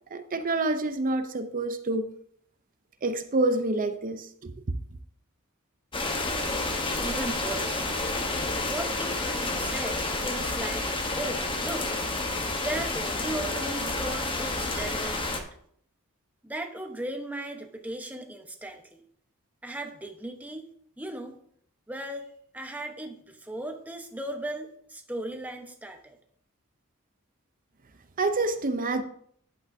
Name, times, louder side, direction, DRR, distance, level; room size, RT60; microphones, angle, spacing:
voice 1, 0.1-2.1 3.0-4.5 28.2-29.0, right 2 dB, 40° right, 9 dB, 0.7 m, -27 dB
sound 1, 5.9-15.4, left 2 dB, 25° left, 1.1 m, -30 dB
voice 2, 7.0-7.9 8.6-12.0 12.6-15.5 16.4-19.0 19.6-20.7 21.0-21.4 21.9-26.2, right 1 dB, 5° right, 4 dB, 1.0 m, -37 dB
11.5 x 8.5 x 2.7 m, 0.63 s
head